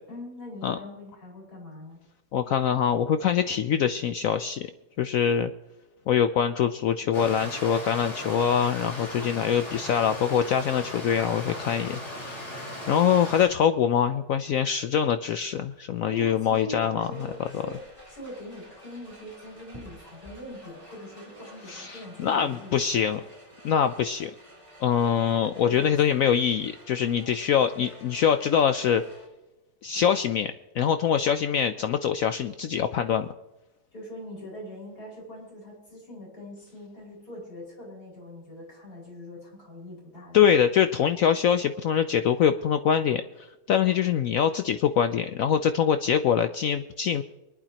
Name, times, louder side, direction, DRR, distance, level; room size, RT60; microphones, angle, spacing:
voice 1, 0.1-2.0 16.1-23.1 25.6-26.0 33.9-40.6, left 1 dB, 55° left, -4 dB, 6.1 m, -42 dB
voice 2, 2.3-4.7 5.0-5.5 6.1-12.5 12.9-17.1 21.7-23.2 23.6-24.3 24.8-29.0 29.8-33.3 40.3-47.2, left 8 dB, 75° left, 9 dB, 0.7 m, -24 dB
Stream, 7.1-13.5, left 1 dB, 40° left, 5.3 m, -37 dB
sound 1, 17.1-29.3, equal, 15° right, 3.7 m, -50 dB
23.5 x 11.5 x 2.9 m, 1.0 s
omnidirectional pair, 1.9 m